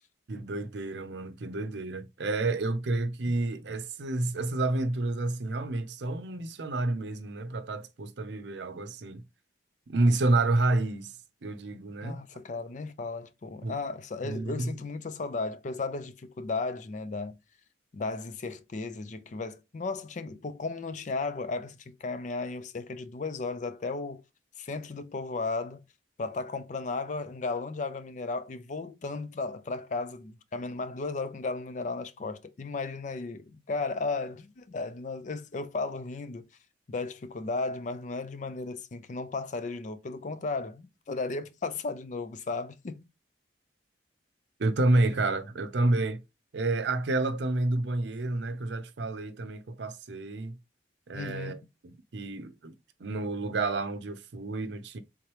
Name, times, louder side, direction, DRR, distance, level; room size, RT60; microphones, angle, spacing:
voice 1, 0.3-9.2 9.9-11.2 11.4-12.2 13.6-13.7 14.2-14.7 44.6-46.2 46.5-50.6 51.1-51.6 51.8-52.7 53.0-55.0, right 2 dB, 75° right, 0.6 m, -29 dB
voice 2, 12.0-17.4 17.9-24.2 24.6-25.8 26.2-36.5 36.9-43.1 51.1-51.6, left 3 dB, 45° left, 0.4 m, -35 dB
3.7 x 3.0 x 3.0 m
head